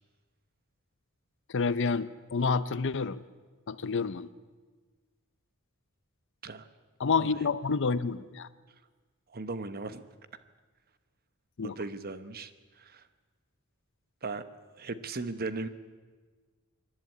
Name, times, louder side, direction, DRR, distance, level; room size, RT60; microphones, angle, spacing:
voice 1, 1.5-3.2 3.7-4.3 7.0-8.5 11.6-11.8, left 4 dB, 55° left, 16 dB, 0.6 m, -29 dB
voice 2, 9.3-10.0 11.6-13.0 14.2-14.4 14.8-15.7, right 3 dB, 45° right, 12 dB, 1.0 m, -37 dB
26.0 x 11.0 x 9.5 m, 1.4 s
head